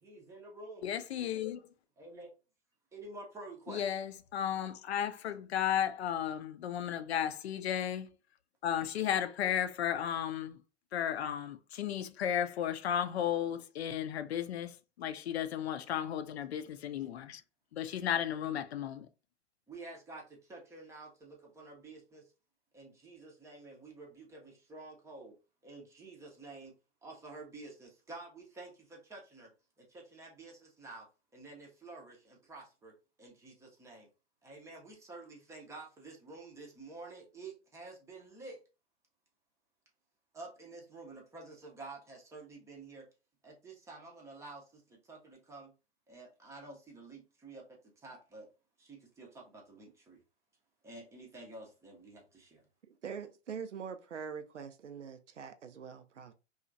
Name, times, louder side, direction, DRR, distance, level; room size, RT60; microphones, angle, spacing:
voice 1, 0.0-0.9 2.0-2.3 2.9-3.8 19.7-22.2 22.7-25.4 25.6-26.7 27.0-29.5 29.8-31.1 31.3-32.9 33.2-34.1 34.4-38.6 40.3-43.1 43.4-45.7 46.1-47.6 48.0-48.5 48.8-50.2 50.8-52.6, right 3 dB, 10° right, 0.5 m, -50 dB
voice 2, 0.8-1.6 3.7-8.1 8.6-10.6 10.9-17.4 17.7-19.1, left 9 dB, 65° left, 0.5 m, -34 dB
voice 3, 52.9-56.3, right 6 dB, 85° right, 0.5 m, -44 dB
2.8 x 2.4 x 2.5 m
figure-of-eight pair, 110°, 35 cm